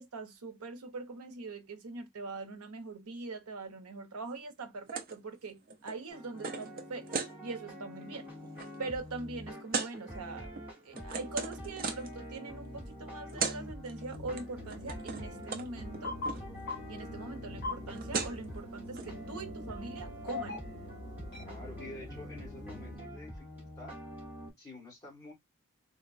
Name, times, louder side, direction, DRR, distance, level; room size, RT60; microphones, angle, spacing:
voice 1, 0.0-7.1 7.4-8.3 8.8-10.5 10.9-16.2 16.9-20.6, right 3 dB, 90° right, 0.7 m, -42 dB
sound 1, 4.9-5.2 5.5-7.3 7.8-8.1 8.3-8.7 9.7-9.9 10.5-12.2 13.0-13.1 13.3-13.6 13.9-14.4 14.7-15.3 15.5-15.7 15.9-16.4 17.7-17.8 17.9-18.5 18.9-19.1, right 5 dB, 40° right, 0.6 m, -37 dB
sound 2, 6.1-24.5, equal, 5° right, 1.2 m, -46 dB
sound 3, 14.1-23.0, left 3 dB, 50° left, 1.6 m, -44 dB
voice 2, 21.4-24.0 24.6-25.3, left 2 dB, 15° left, 1.7 m, -49 dB
3.9 x 2.1 x 2.5 m
head